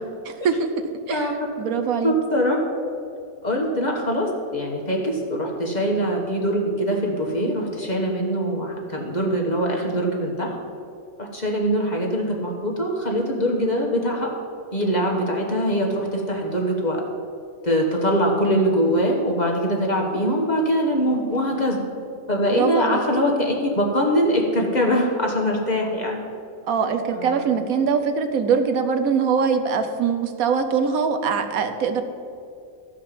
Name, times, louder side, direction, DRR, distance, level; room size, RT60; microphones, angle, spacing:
voice 1, 0.2-0.7 1.1-1.3 1.6-2.1 22.5-23.0 26.7-32.0, right 6 dB, 80° right, 7 dB, 1.2 m, -22 dB
voice 2, 1.1-1.5 2.0-2.8 3.4-10.5 11.2-14.3 14.7-17.0 17.6-21.8 22.3-26.2 27.1-27.6, equal, 30° left, 0 dB, 1.4 m, -23 dB
13.0 x 5.0 x 7.4 m, 2.4 s
omnidirectional pair, 1.5 m